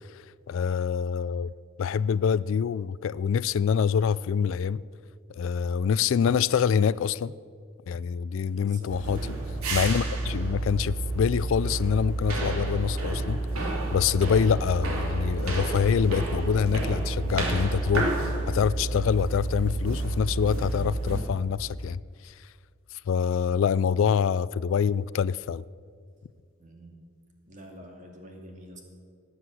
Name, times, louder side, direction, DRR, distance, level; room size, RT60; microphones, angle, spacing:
voice 1, 0.5-1.5 1.8-4.8 5.4-7.3 7.9-9.4 9.7-13.4 13.9-22.0 23.1-25.6, left 7 dB, 65° left, 0.3 m, -25 dB
voice 2, 8.5-8.9 23.1-23.2 23.5-23.6 26.6-26.9 27.5-28.8, equal, 35° right, 2.4 m, -47 dB
sound 1, 8.9-21.2, right 2 dB, 90° right, 2.9 m, -29 dB
18.5 x 8.0 x 7.7 m
head